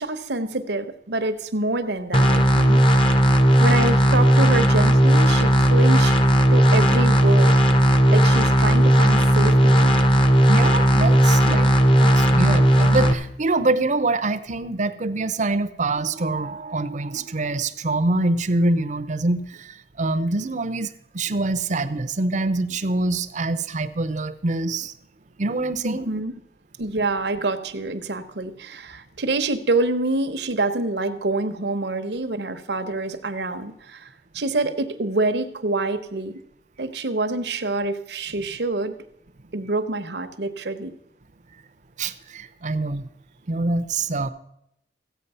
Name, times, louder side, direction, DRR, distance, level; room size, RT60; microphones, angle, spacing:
voice 1, 0.0-6.2 6.5-7.6 8.1-10.0 25.8-26.3 26.8-36.4 36.8-39.0 39.5-40.9, right 2 dB, 70° right, 8 dB, 0.9 m, -26 dB
sound 1, 2.1-13.1, equal, 30° left, 0.8 m, -16 dB
voice 2, 10.5-11.7 12.0-24.9 25.4-26.2 42.0-43.0 43.5-44.3, right 2 dB, 45° right, 12 dB, 0.7 m, -25 dB
14.5 x 8.5 x 5.5 m, 0.77 s
head